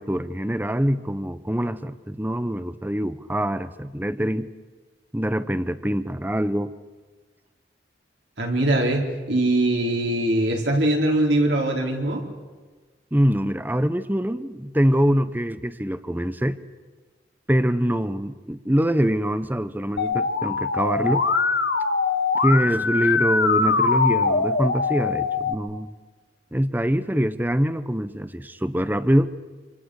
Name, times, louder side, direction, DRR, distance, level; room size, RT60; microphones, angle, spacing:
voice 1, 0.0-4.5 5.1-6.8 13.1-16.6 17.5-21.3 22.4-26.0 26.5-29.3, equal, 10° right, 13 dB, 0.9 m, -24 dB
voice 2, 8.4-12.3, right 1 dB, 75° right, 0 dB, 4.4 m, -22 dB
Musical instrument, 20.0-25.5, left 4 dB, 65° left, 1.5 m, -22 dB
27.5 x 27.0 x 6.5 m, 1.4 s
head